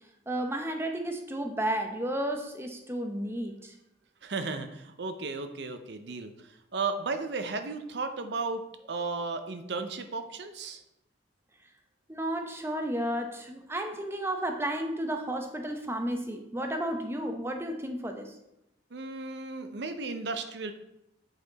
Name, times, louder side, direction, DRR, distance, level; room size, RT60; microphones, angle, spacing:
voice 1, 0.3-3.7 12.1-18.3, right 1 dB, 15° right, 4 dB, 0.7 m, -32 dB
voice 2, 4.2-8.6 8.9-10.8 18.9-20.7, right 4 dB, 65° right, 8 dB, 0.6 m, -34 dB
8.0 x 4.2 x 4.0 m, 0.85 s
head